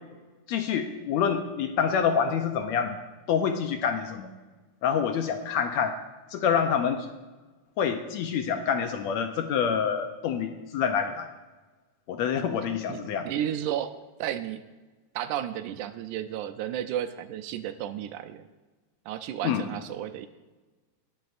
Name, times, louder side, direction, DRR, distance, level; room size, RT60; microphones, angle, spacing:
voice 1, 0.5-3.0 3.3-4.3 4.8-6.0 6.3-7.1 7.8-11.3 12.1-13.3 19.4-19.7, left 7 dB, 75° left, 6 dB, 1.7 m, -27 dB
voice 2, 12.9-13.9 14.2-14.6 15.2-18.5 19.1-20.3, right 11 dB, 80° right, 10 dB, 2.0 m, -33 dB
19.0 x 9.5 x 2.5 m, 1.2 s
omnidirectional pair, 3.6 m